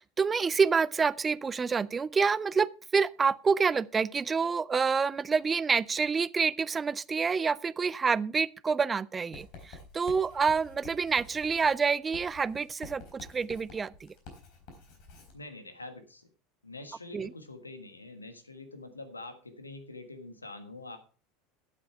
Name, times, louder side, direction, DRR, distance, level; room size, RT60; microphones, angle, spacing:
voice 1, 0.0-14.1 17.1-17.3, right 5 dB, 20° right, 0.4 m, -28 dB
Writing, 9.3-15.4, left 3 dB, 55° left, 3.9 m, -50 dB
voice 2, 15.3-16.3 16.6-21.0, left 2 dB, 85° left, 1.5 m, -45 dB
12.0 x 8.3 x 4.5 m
figure-of-eight pair, 75°, 0 cm